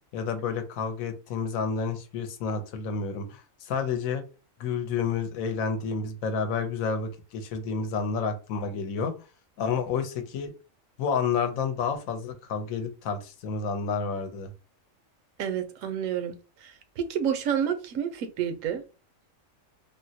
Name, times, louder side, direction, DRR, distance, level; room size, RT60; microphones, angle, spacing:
voice 1, 0.1-4.2 4.6-9.1 9.6-10.5 11.0-14.5, left 5 dB, 85° left, 1.0 m, -30 dB
voice 2, 15.4-16.3 16.6-18.8, right 8 dB, 75° right, 0.9 m, -29 dB
3.6 x 2.0 x 2.7 m
omnidirectional pair, 1.4 m